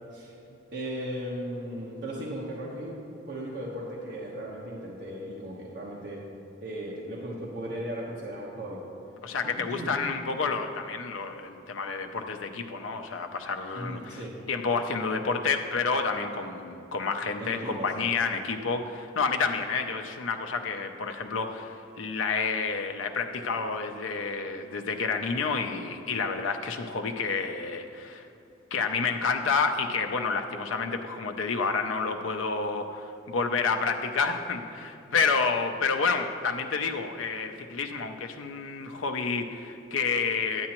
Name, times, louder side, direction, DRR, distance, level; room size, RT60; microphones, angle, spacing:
voice 1, 0.7-3.0 3.3-6.2 6.6-8.8 9.7-9.9 13.7-14.3 17.4-18.1, right 1 dB, 60° right, -6 dB, 1.0 m, -36 dB
voice 2, 9.2-28.3 28.7-40.7, left 4 dB, 85° left, 5 dB, 0.5 m, -29 dB
9.6 x 8.5 x 2.9 m, 2.8 s
head